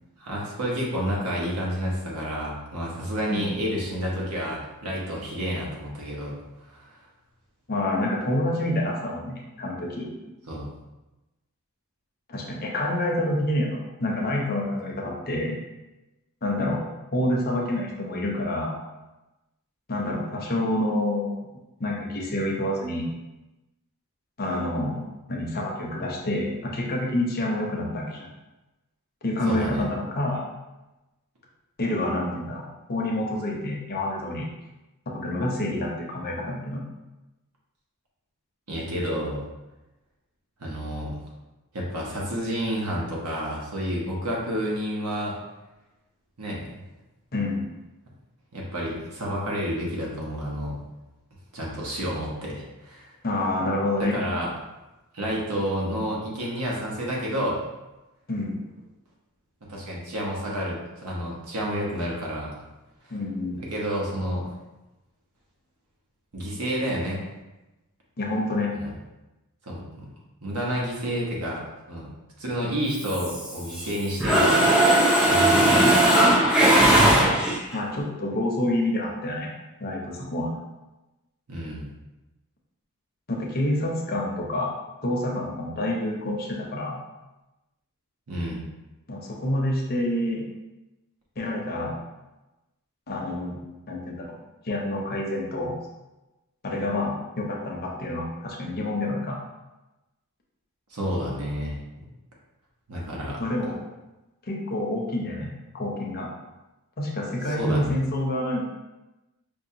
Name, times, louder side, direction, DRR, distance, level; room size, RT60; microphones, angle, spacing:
voice 1, 0.2-6.4 6.7-6.9 10.5-10.7 29.5-29.9 38.7-39.4 40.6-41.1 41.7-45.4 46.4-46.6 48.5-50.8 51.5-53.1 54.0-54.5 55.1-57.6 59.7-62.5 63.7-64.5 66.3-67.2 68.7-68.9 69.7-70.1 70.4-71.6 71.9-72.1 72.4-74.7 75.2-77.0 81.5-81.9 88.3-88.6 100.9-102.1 102.9-103.4 107.5-107.9, equal, 85° right, -3 dB, 1.0 m, -30 dB
voice 2, 7.7-10.1 12.3-15.6 16.4-16.8 17.1-18.8 19.9-21.5 21.8-23.1 24.4-28.3 29.2-30.4 31.8-34.5 35.1-36.8 47.3-47.6 53.2-54.2 58.3-58.7 63.1-63.6 68.2-68.7 77.7-79.5 79.8-80.5 83.3-84.7 85.0-87.0 89.1-90.4 91.4-92.0 93.1-93.6 93.9-94.4 94.6-95.8 96.6-99.4 103.4-103.8 104.5-106.3 107.0-108.6, left 1 dB, 45° left, -1 dB, 0.7 m, -28 dB
Mechanisms, 73.0-73.9 74.2-77.8, right 1 dB, 5° right, 0.4 m, -18 dB
5.3 x 2.2 x 2.7 m, 1.0 s
head